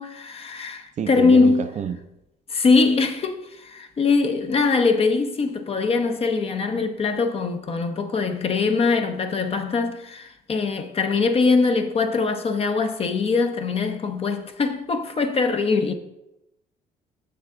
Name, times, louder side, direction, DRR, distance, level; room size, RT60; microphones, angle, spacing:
voice 1, 0.0-1.7 2.5-15.9, left 4 dB, 35° left, 0.8 m, -22 dB
voice 2, 1.0-2.0, right 7 dB, 45° right, 0.6 m, -28 dB
7.3 x 6.9 x 3.7 m
cardioid pair, 110°, 17 cm